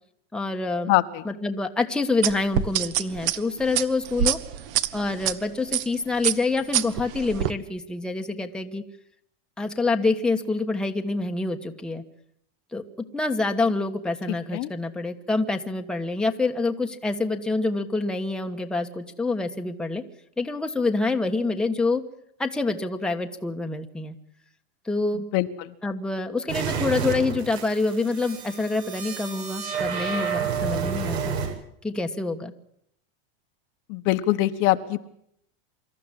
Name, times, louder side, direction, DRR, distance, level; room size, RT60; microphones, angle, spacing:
voice 1, 0.3-0.9 1.2-4.4 4.9-8.8 9.6-12.0 12.7-12.8 13.1-20.0 20.4-22.0 22.4-24.1 24.8-25.2 25.8-31.3 31.8-32.5, left 3 dB, 5° left, 4 dB, 1.2 m, -26 dB
voice 2, 0.9-1.2 14.5-14.7 25.3-25.7 33.9-35.0, left 16 dB, 45° left, 9 dB, 1.2 m, -23 dB
sound 1, 2.2-5.3 5.7-5.9 6.2-7.5, right 11 dB, 60° right, 1.5 m, -25 dB
sound 2, 26.5-31.5, right 6 dB, 85° right, 7.9 m, -30 dB
25.5 x 14.0 x 9.8 m, 0.72 s
supercardioid pair, 160°, 31 cm